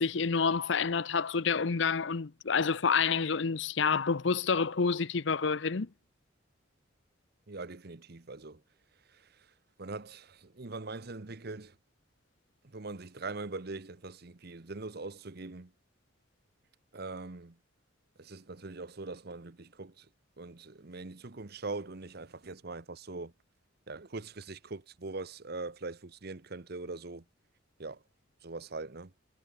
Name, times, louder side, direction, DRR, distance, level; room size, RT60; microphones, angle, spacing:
voice 1, 0.0-5.9, left 5 dB, 65° left, 0.7 m, -28 dB
voice 2, 7.5-8.6 9.0-11.8 12.6-15.7 16.9-17.6 18.2-20.1 20.4-23.3 23.9-27.2 27.8-28.0 28.4-29.1, right 3 dB, 55° right, 1.0 m, -42 dB
head